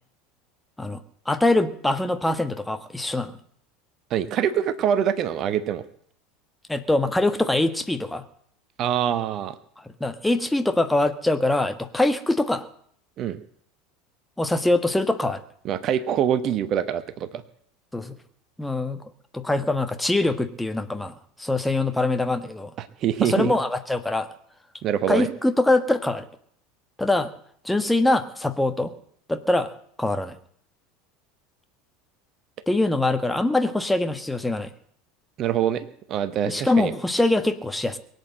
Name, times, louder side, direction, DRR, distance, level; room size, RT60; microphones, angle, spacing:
voice 1, 1.3-3.4 6.7-8.2 10.0-12.6 14.4-15.4 17.9-18.1 18.6-19.0 19.3-22.7 23.2-24.3 25.1-26.2 27.0-27.3 27.6-28.9 29.3-29.7 30.0-30.3 32.7-34.7 36.5-38.0, left 2 dB, 5° left, 9 dB, 1.3 m, -23 dB
voice 2, 4.1-5.8 8.8-9.6 13.2-13.4 15.6-17.4 22.8-23.5 24.8-25.3 35.4-36.9, right 9 dB, 40° right, 14 dB, 1.0 m, -24 dB
22.5 x 8.2 x 7.7 m, 0.64 s
figure-of-eight pair, 75°, 0 cm